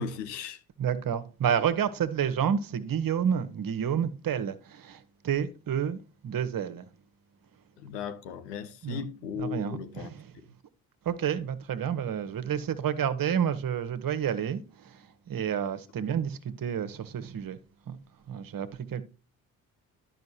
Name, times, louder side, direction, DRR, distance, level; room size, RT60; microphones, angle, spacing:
voice 1, 0.0-0.6 7.8-10.1, left 6 dB, 75° left, 1.1 m, -36 dB
voice 2, 0.8-6.8 8.8-9.0 9.4-10.3 11.0-17.6 17.9-18.0 18.3-19.0, right 8 dB, 45° right, 1.2 m, -30 dB
12.0 x 5.9 x 2.8 m
figure-of-eight pair, 40°, 48 cm